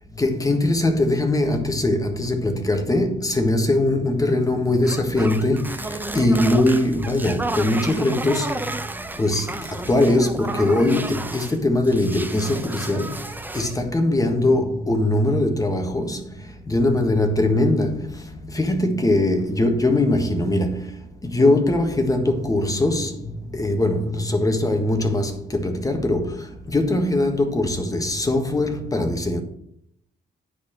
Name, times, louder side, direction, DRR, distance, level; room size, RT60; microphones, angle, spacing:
voice 1, 0.2-5.7 6.1-8.5 9.2-9.5 9.9-13.2 13.5-16.2 16.7-18.1 18.4-20.8 21.2-23.1 23.5-26.3 26.7-29.4, left 1 dB, 20° left, 1.5 m, -21 dB
sound 1, 4.8-11.6 11.8-13.8, right 2 dB, 10° right, 0.7 m, -32 dB
9.7 x 4.2 x 7.2 m
cardioid pair, 90°, 19 cm